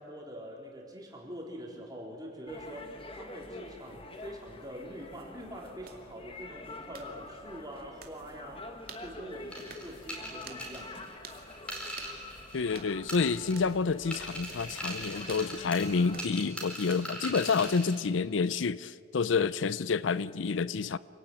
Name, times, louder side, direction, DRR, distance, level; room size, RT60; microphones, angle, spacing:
voice 1, 0.0-8.7 9.0-11.0, equal, 20° right, 4.2 m, -44 dB
sound 1, 2.5-16.2, left 2 dB, 30° left, 1.7 m, -47 dB
sound 2, 5.9-6.0 6.9-7.1 8.0-8.2 8.9-9.1 9.7-9.9 10.5-10.6 11.2-11.4 12.0-12.2 12.7-12.9 13.6-13.7 14.5-14.7 15.3-15.5 16.1-16.3 16.9-17.1 17.6-17.9, right 7 dB, 50° right, 2.3 m, -48 dB
sound 3, 9.5-12.8 13.1-13.8 14.1-18.0, equal, 5° left, 4.3 m, -41 dB
voice 2, 12.5-21.0, left 5 dB, 75° left, 0.5 m, -29 dB
27.0 x 18.5 x 9.0 m
head